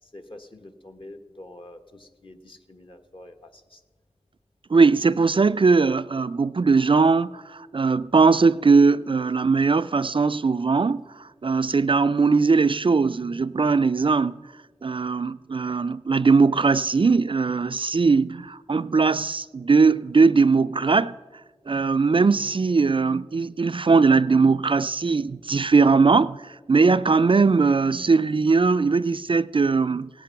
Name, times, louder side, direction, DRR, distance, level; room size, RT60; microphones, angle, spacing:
voice 1, 0.0-3.8, left 1 dB, 45° left, 1.3 m, -46 dB
voice 2, 4.7-14.3 14.8-21.2 21.7-30.1, right 4 dB, 50° right, 0.3 m, -20 dB
17.0 x 8.8 x 5.7 m
wide cardioid pair, 40°, 12 cm